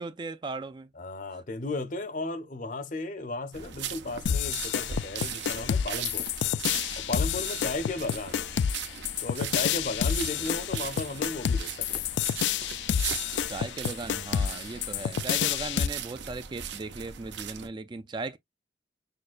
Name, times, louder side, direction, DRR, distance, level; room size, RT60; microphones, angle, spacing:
voice 1, 0.0-0.9 13.5-18.4, right 3 dB, 25° right, 0.3 m, -37 dB
voice 2, 1.0-6.3 7.0-8.4 9.2-12.1, left 2 dB, 45° left, 0.7 m, -35 dB
sound 1, 3.5-17.7, right 7 dB, 85° right, 0.8 m, -39 dB
sound 2, 4.3-15.9, left 8 dB, 80° left, 0.3 m, -29 dB
6.4 x 2.2 x 2.4 m
head